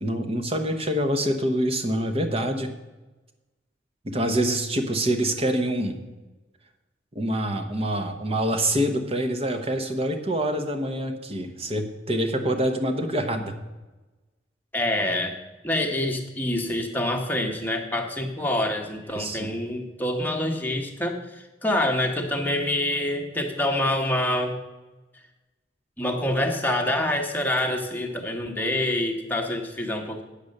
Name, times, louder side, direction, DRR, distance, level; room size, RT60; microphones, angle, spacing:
voice 1, 0.0-2.7 4.0-6.0 7.1-13.5 19.1-19.5, right 1 dB, 30° right, 6 dB, 1.0 m, -26 dB
voice 2, 14.7-15.3 15.6-24.6 26.0-30.2, left 1 dB, 10° left, 2 dB, 1.1 m, -26 dB
8.5 x 6.9 x 6.6 m, 1.1 s
head